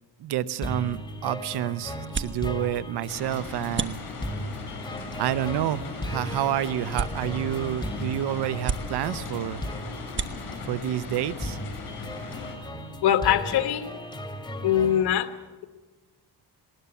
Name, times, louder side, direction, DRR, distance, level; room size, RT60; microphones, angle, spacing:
voice 1, 0.2-4.0 5.2-9.6 10.7-11.6, right 12 dB, 90° right, 15 dB, 0.8 m, -29 dB
sound 1, 0.6-15.0, left 1 dB, 10° left, 2.5 m, -37 dB
sound 2, 0.7-12.2, right 5 dB, 30° right, 1.1 m, -39 dB
sound 3, 3.1-12.5, left 4 dB, 65° left, 7.8 m, -39 dB
voice 2, 13.0-13.9 14.6-15.3, left 10 dB, 80° left, 8 dB, 1.4 m, -22 dB
19.5 x 19.5 x 7.1 m, 1.3 s
cardioid pair, 100°, 39 cm